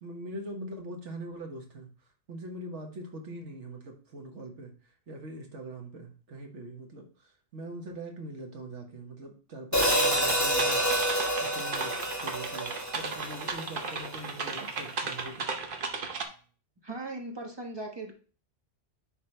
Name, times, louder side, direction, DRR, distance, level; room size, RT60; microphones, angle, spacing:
voice 1, 0.0-1.9 2.3-4.7 5.1-15.5, right 1 dB, 80° right, 2 dB, 1.6 m, -42 dB
Hi-hat, 9.7-14.0, equal, 15° left, 1.2 m, -28 dB
sound 1, 9.8-16.2, right 4 dB, 50° right, 1.0 m, -35 dB
voice 2, 16.8-18.1, right 2 dB, 20° right, 1 dB, 1.2 m, -38 dB
10.0 x 3.4 x 3.3 m, 0.39 s
omnidirectional pair, 1.2 m